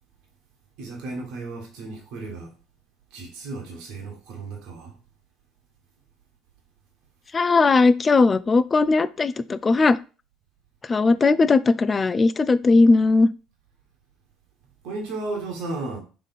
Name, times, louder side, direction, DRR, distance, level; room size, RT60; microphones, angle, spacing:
voice 1, 0.8-2.5 3.1-5.0 14.8-16.0, right 3 dB, 65° right, 1.3 m, -34 dB
voice 2, 7.3-10.0 10.9-13.3, left 3 dB, 30° left, 0.4 m, -18 dB
3.8 x 3.5 x 4.0 m
hypercardioid pair, 60°, 0 cm